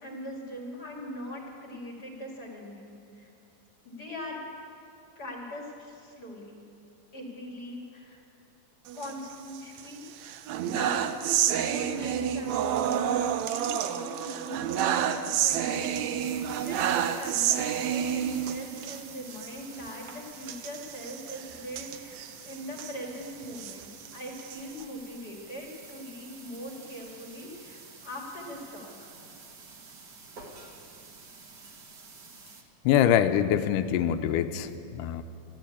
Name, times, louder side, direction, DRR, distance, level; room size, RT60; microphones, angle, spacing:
voice 1, 0.0-3.3 3.8-4.4 5.2-6.6 7.1-8.2 8.9-10.0 10.6-11.1 11.6-13.1 13.4-23.9 24.1-29.1, left 1 dB, 35° left, -2 dB, 2.2 m, -41 dB
sound 1, 8.9-9.8 10.2-19.0 19.3-19.5 19.7-19.9 20.4-22.9 23.4-24.8, right 9 dB, 75° right, 1.7 m, -29 dB
sound 2, 15.7-32.6, right 4 dB, 50° right, 1.2 m, -49 dB
voice 2, 32.9-35.2, left 10 dB, 85° left, 10 dB, 2.2 m, -24 dB
13.5 x 12.0 x 8.4 m, 2.5 s
omnidirectional pair, 3.7 m